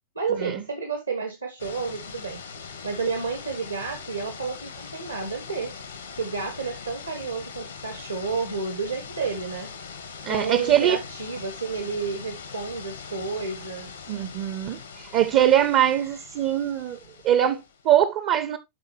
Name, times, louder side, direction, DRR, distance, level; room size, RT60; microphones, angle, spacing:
voice 1, 0.1-2.4 2.8-5.7 6.1-9.7 10.3-13.9, right 4 dB, 75° right, 1.1 m, -31 dB
sound 1, 1.6-17.9, left 5 dB, 75° left, 1.3 m, -41 dB
voice 2, 10.2-11.0 14.1-17.0 17.2-18.6, right 11 dB, 45° right, 0.6 m, -22 dB
11.5 x 3.9 x 3.2 m
figure-of-eight pair, 90°, 0 cm